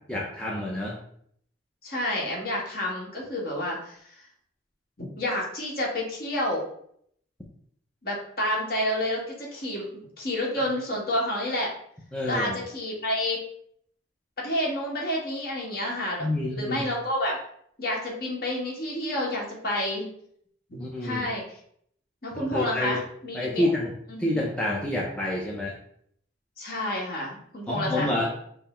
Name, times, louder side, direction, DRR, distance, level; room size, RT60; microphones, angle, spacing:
voice 1, 0.1-1.0 12.1-12.6 16.2-16.9 20.8-21.3 22.3-23.0 23.3-23.9 24.2-25.7 27.7-28.3, left 1 dB, 5° left, -4 dB, 0.6 m, -28 dB
voice 2, 1.8-4.2 5.0-6.6 8.0-9.9 10.2-11.7 12.2-13.4 14.4-17.4 17.8-20.1 20.7-21.6 22.2-23.6 24.1-24.4 26.6-28.3, left 1 dB, 50° left, -2 dB, 1.3 m, -29 dB
5.6 x 2.0 x 4.2 m, 0.67 s
head